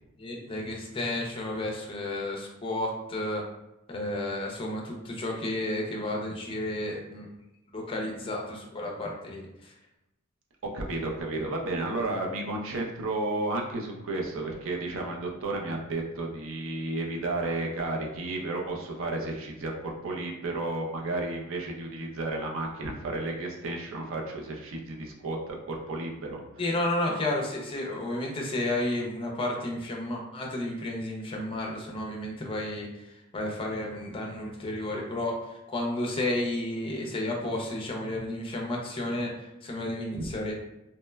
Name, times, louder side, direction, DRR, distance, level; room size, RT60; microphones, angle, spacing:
voice 1, 0.2-3.4 3.9-7.3 7.7-9.7 26.6-40.5, left 1 dB, 25° left, 0 dB, 0.4 m, -32 dB
voice 2, 10.7-26.4 40.1-40.3, right 2 dB, 65° right, 1 dB, 0.5 m, -32 dB
2.9 x 2.1 x 2.2 m, 0.90 s
head